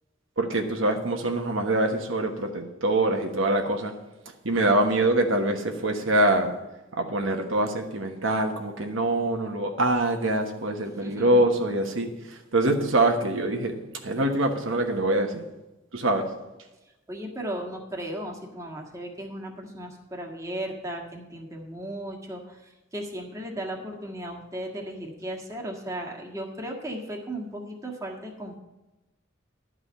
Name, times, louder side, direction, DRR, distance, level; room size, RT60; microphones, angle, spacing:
voice 1, 0.4-3.9 4.4-6.5 7.0-13.8 14.0-15.4 15.9-16.3, right 1 dB, 85° right, 3 dB, 1.3 m, -24 dB
voice 2, 11.0-11.6 17.1-28.6, right 1 dB, 15° right, 0 dB, 1.6 m, -36 dB
11.5 x 4.9 x 8.6 m, 1.0 s
head